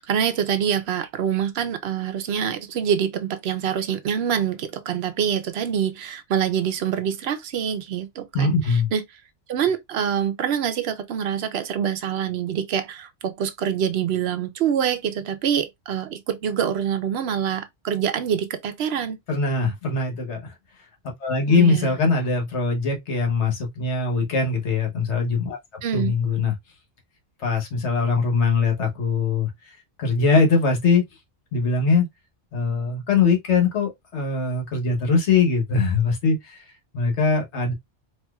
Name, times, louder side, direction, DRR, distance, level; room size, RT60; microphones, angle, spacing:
voice 1, 0.0-8.6 8.9-9.0 9.5-19.2 21.5-22.0 25.8-26.1, right 8 dB, 65° right, 0.8 m, -25 dB
voice 2, 8.3-8.9 19.3-20.5 21.2-25.6 25.9-26.5 27.4-29.5 30.0-31.0 31.5-32.1 32.5-36.6 36.9-37.7, left 4 dB, 75° left, 1.3 m, -21 dB
4.3 x 2.6 x 2.3 m
omnidirectional pair, 1.2 m